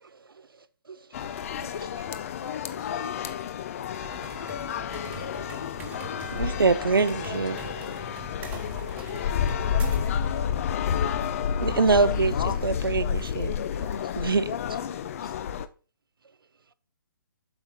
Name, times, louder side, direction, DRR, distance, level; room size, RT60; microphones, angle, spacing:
sound 1, 1.1-15.7, left 8 dB, 40° left, 0.6 m, -30 dB
voice 1, 1.5-3.4 6.8-8.0 12.1-12.3 12.6-12.9 13.3-13.7, left 5 dB, 55° left, 1.5 m, -42 dB
sound 2, 3.9-10.2, right 6 dB, 15° right, 1.2 m, -44 dB
voice 2, 5.1-5.6 9.6-10.9 14.8-15.3, left 6 dB, 75° left, 1.6 m, -44 dB
voice 3, 6.3-7.6 9.7-9.8 11.6-13.5 13.9-14.6, right 4 dB, 90° right, 0.7 m, -25 dB
8.0 x 5.6 x 4.1 m
hypercardioid pair, 150°, 11 cm